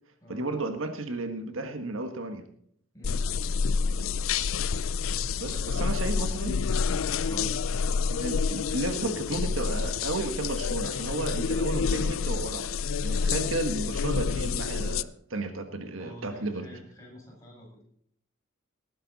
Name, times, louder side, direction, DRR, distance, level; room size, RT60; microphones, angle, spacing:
voice 1, 0.3-2.5 5.4-6.6 7.3-7.6 8.1-12.7 13.0-16.8, right 2 dB, 75° right, 7 dB, 1.5 m, -33 dB
voice 2, 2.9-3.3 5.0-6.0 7.1-7.4 15.9-17.8, equal, 15° left, -3 dB, 7.4 m, -48 dB
sound 1, 3.0-15.0, left 5 dB, 80° left, 0.5 m, -28 dB
19.0 x 11.0 x 4.1 m, 0.64 s
head